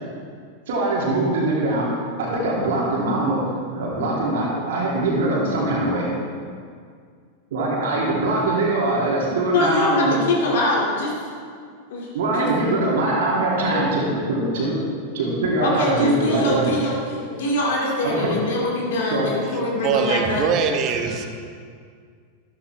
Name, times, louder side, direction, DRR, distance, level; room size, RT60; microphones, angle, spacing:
voice 1, 0.7-1.9 2.2-3.4 3.7-6.1 7.5-10.2 12.1-14.8 15.1-16.7 18.0-18.4 19.1-19.3, right 2 dB, 55° right, -5 dB, 2.7 m, -22 dB
voice 2, 9.5-11.1 11.9-12.1 12.3-12.5 13.5-13.9 15.6-21.3, left 2 dB, 55° left, -3 dB, 2.5 m, -24 dB
voice 3, 19.7-21.3, right 6 dB, 35° right, 5 dB, 1.2 m, -22 dB
13.0 x 12.5 x 3.4 m, 2.1 s
figure-of-eight pair, 90°, 0 cm